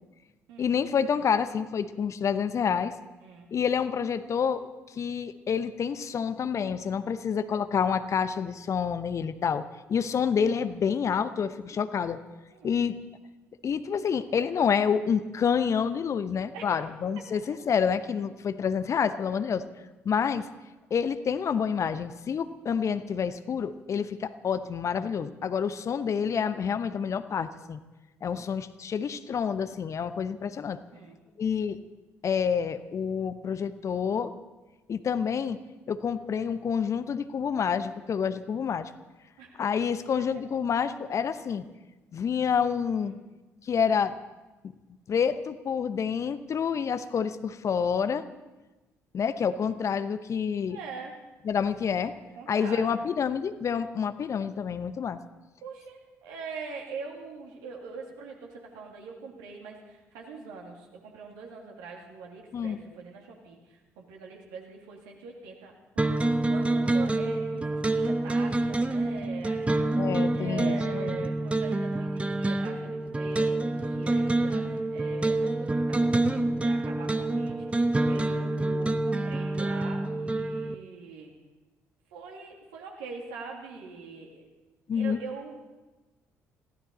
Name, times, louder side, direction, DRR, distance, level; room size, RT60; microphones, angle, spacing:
voice 1, 0.6-2.9 3.5-12.2 12.6-13.0 13.6-19.6 20.0-20.5 20.9-27.8 28.2-30.8 31.4-31.8 32.2-34.3 34.9-35.6 35.9-38.9 39.6-41.6 42.1-43.2 43.6-44.1 45.1-48.3 49.1-50.8 51.5-52.1 52.5-55.2 62.5-62.8 70.0-70.7 71.0-71.3 84.9-85.2, left 7 dB, 45° left, 12 dB, 0.9 m, -28 dB
voice 2, 3.2-3.5 12.5-12.8 16.5-16.8 17.2-17.3 30.9-31.2 39.4-39.6 42.9-43.2 50.7-51.2 52.4-53.0 55.6-70.0 70.3-81.3 82.1-84.5 84.9-85.7, right 4 dB, 65° right, 0 dB, 2.8 m, -43 dB
sound 1, 66.0-80.7, right 2 dB, 15° right, 1.0 m, -27 dB
22.0 x 15.5 x 4.1 m, 1.1 s
figure-of-eight pair, 45°, 7 cm